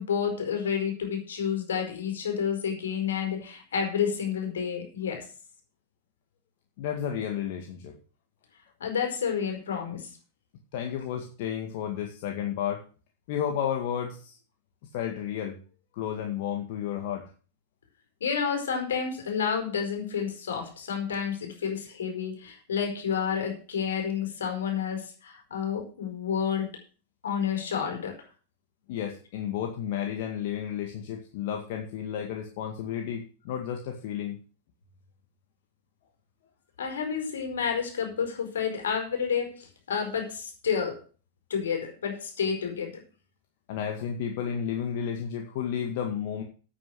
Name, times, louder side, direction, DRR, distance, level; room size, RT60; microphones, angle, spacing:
voice 1, 0.0-5.2 8.8-10.1 18.2-26.7 27.2-28.2 36.8-41.0 41.5-42.9, left 7 dB, 80° left, 4 dB, 4.7 m, -30 dB
voice 2, 6.8-8.0 10.7-12.8 13.3-14.4 14.9-15.6 15.9-17.3 28.9-34.4 43.7-46.4, left 9 dB, 60° left, 3 dB, 2.0 m, -32 dB
9.3 x 8.8 x 6.2 m, 0.37 s
hypercardioid pair, 105°, 0 cm